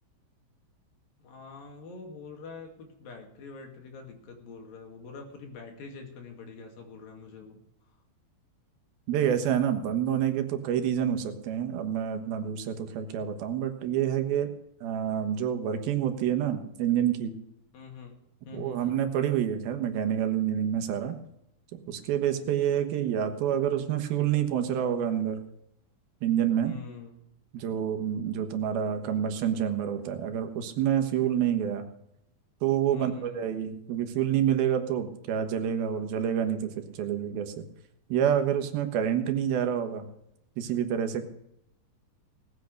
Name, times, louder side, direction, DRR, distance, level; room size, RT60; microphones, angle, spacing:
voice 1, 1.2-7.6 17.7-18.1 18.4-19.0 26.6-27.1 32.9-33.5, left 4 dB, 70° left, 3 dB, 4.0 m, -45 dB
voice 2, 9.1-14.5 14.8-17.3 18.5-21.2 21.7-25.4 26.2-26.7 27.5-31.9 32.6-37.6 38.1-40.1 40.6-41.2, right 9 dB, 85° right, 7 dB, 3.2 m, -28 dB
18.5 x 8.5 x 6.6 m, 0.81 s
omnidirectional pair, 4.2 m